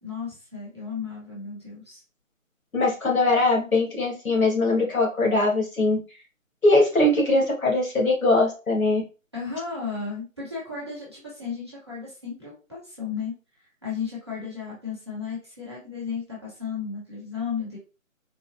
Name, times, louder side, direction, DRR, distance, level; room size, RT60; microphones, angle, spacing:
voice 1, 0.0-2.0 9.3-13.3 13.6-17.8, left 6 dB, 20° right, -7 dB, 0.9 m, -34 dB
voice 2, 2.7-6.0 6.6-9.0, left 2 dB, 85° left, -2 dB, 1.7 m, -21 dB
3.9 x 2.1 x 2.5 m, 0.33 s
figure-of-eight pair, 175°, 41 cm